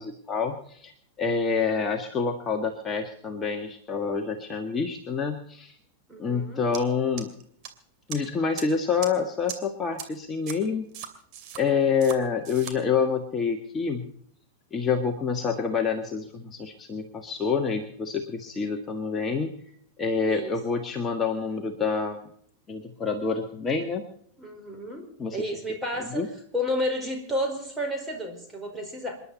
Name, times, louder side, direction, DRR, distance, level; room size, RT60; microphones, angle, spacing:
voice 1, 0.0-5.8 6.2-7.3 8.1-10.9 11.6-14.1 14.7-19.6 20.0-22.2 22.7-24.0 25.2-25.6 26.1-26.3, left 5 dB, 20° left, 4 dB, 1.7 m, -27 dB
voice 2, 6.1-6.7 20.2-20.6 24.4-26.2 26.5-29.2, left 1 dB, 10° right, 2 dB, 4.9 m, -31 dB
sound 1, 6.7-6.8 7.2-7.7 8.1-8.2 8.6-8.7 9.0-9.1 9.5-9.6 10.0-10.1 10.5-10.6 10.9-11.6 12.0-12.2 12.4-12.7, right 10 dB, 40° right, 2.7 m, -37 dB
28.0 x 11.0 x 4.2 m, 0.64 s
figure-of-eight pair, 90°, 0 cm